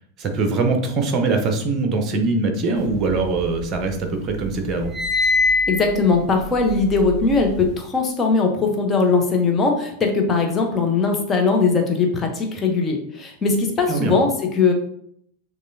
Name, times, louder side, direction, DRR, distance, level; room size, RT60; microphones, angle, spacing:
voice 1, 0.2-4.9 13.9-14.2, right 3 dB, 30° right, 5 dB, 0.9 m, -22 dB
sound 1, 2.9-4.0 4.3-7.7, left 3 dB, ahead, 1.0 m, -24 dB
voice 2, 5.7-14.7, left 4 dB, 20° left, 2 dB, 1.0 m, -20 dB
6.5 x 3.0 x 2.7 m, 0.69 s
figure-of-eight pair, 90°, 0 cm